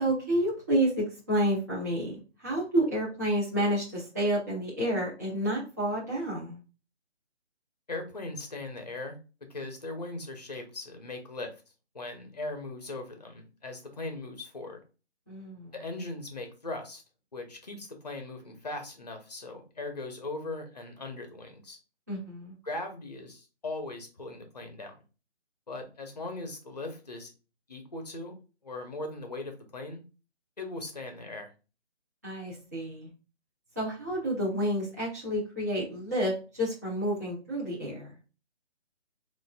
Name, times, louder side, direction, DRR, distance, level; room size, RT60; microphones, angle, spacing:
voice 1, 0.0-6.6 15.3-15.7 22.1-22.5 32.2-33.1 33.7-38.1, right 1 dB, 15° right, -8 dB, 0.8 m, -30 dB
voice 2, 7.9-9.2 9.5-11.5 11.9-14.8 15.7-17.0 17.3-21.8 22.6-24.9 25.7-27.3 27.7-28.4 28.6-30.0 30.6-31.5, left 2 dB, 35° left, 5 dB, 0.8 m, -39 dB
7.4 x 2.6 x 2.3 m, 0.33 s
hypercardioid pair, 175°, 34 cm